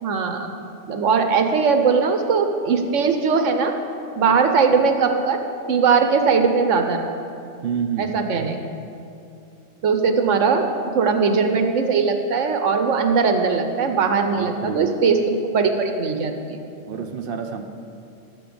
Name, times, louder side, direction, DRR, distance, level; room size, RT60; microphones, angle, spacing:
voice 1, 0.0-0.5 0.9-3.7 4.2-5.4 5.7-7.1 8.0-8.6 9.8-10.7 10.9-16.6, right 5 dB, 75° right, 6 dB, 1.2 m, -20 dB
voice 2, 7.6-8.2 14.4-15.0 16.8-17.6, right 6 dB, 55° right, 5 dB, 1.0 m, -28 dB
11.5 x 7.7 x 6.9 m, 2.5 s
omnidirectional pair, 1.3 m